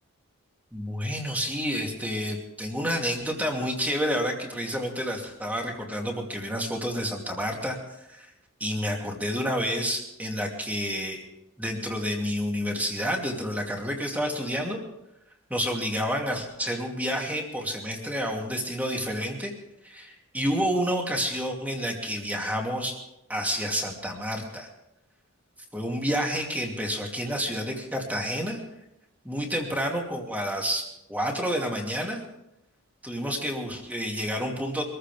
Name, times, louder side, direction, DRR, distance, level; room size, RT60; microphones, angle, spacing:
voice 1, 0.7-7.8 8.1-8.3 8.6-11.2 11.6-14.8 15.5-19.5 19.8-23.0 23.3-24.7 25.7-28.6 29.2-32.2 33.0-34.8, equal, 5° right, 0 dB, 2.7 m, -29 dB
25.0 x 14.5 x 3.6 m, 0.86 s
head